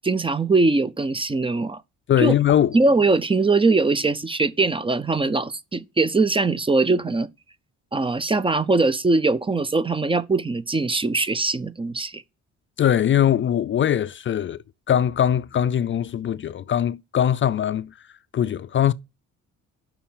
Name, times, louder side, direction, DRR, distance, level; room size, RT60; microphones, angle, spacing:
voice 1, 0.0-1.8 2.2-2.4 2.7-7.3 7.9-12.2, right 3 dB, 15° right, 0.5 m, -21 dB
voice 2, 2.1-2.8 12.8-14.6 14.9-17.9 18.3-18.9, left 10 dB, 40° left, 0.4 m, -21 dB
7.0 x 5.7 x 5.5 m
cardioid pair, 90°, 30 cm